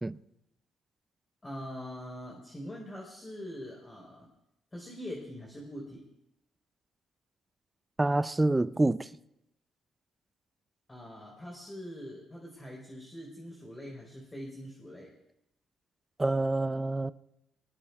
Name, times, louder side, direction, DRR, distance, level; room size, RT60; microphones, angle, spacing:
voice 1, 1.4-4.3 4.7-6.1 10.9-15.1, equal, 20° left, 4.2 m, -43 dB
voice 2, 8.0-9.1 16.2-17.1, right 2 dB, 15° right, 0.4 m, -27 dB
22.5 x 19.0 x 2.4 m
cardioid pair, 90°, 0 cm